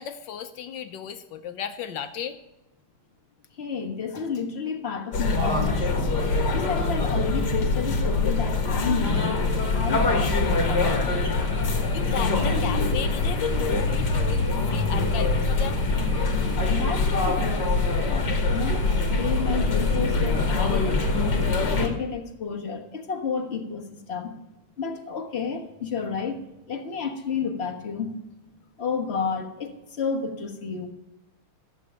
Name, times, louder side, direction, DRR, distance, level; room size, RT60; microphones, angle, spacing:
voice 1, 0.0-2.4 11.9-15.8, left 8 dB, 70° left, 9 dB, 1.3 m, -34 dB
voice 2, 3.6-5.9 6.5-11.1 16.7-17.7 18.0-18.8 19.1-24.3 24.8-26.4 26.7-28.1 28.8-30.9, left 5 dB, 35° left, 3 dB, 1.4 m, -31 dB
sound 1, 5.1-21.9, left 3 dB, 55° left, 2.3 m, -24 dB
sound 2, 9.0-21.8, equal, 60° right, 4.7 m, -47 dB
14.5 x 8.1 x 6.8 m, 0.95 s
omnidirectional pair, 2.3 m